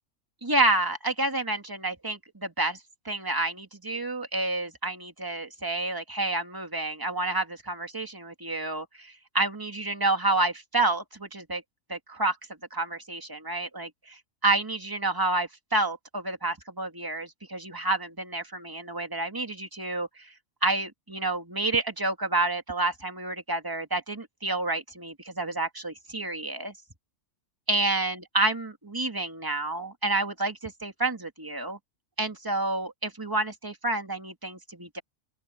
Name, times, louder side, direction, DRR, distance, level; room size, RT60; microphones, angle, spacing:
voice 1, 0.4-2.8 3.0-11.6 11.9-12.4 12.7-14.2 14.4-20.3 20.6-26.7 27.7-31.8 32.2-35.0, right 2 dB, 15° right, 2.3 m, -29 dB
open air
omnidirectional pair, 1.3 m